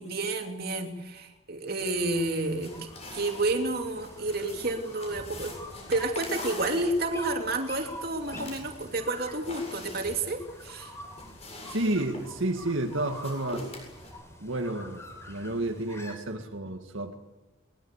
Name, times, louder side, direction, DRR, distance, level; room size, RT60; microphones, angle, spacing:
voice 1, 0.0-5.5 5.9-10.9, right 2 dB, 45° right, 4 dB, 3.0 m, -30 dB
sound 1, 1.8-16.2, left 1 dB, 15° left, 4.2 m, -47 dB
sound 2, 2.4-14.1, left 2 dB, 30° left, 7.8 m, -44 dB
voice 2, 11.7-13.7 14.4-17.1, right 1 dB, 75° right, 3 dB, 2.0 m, -31 dB
23.0 x 21.0 x 8.3 m, 1.0 s
head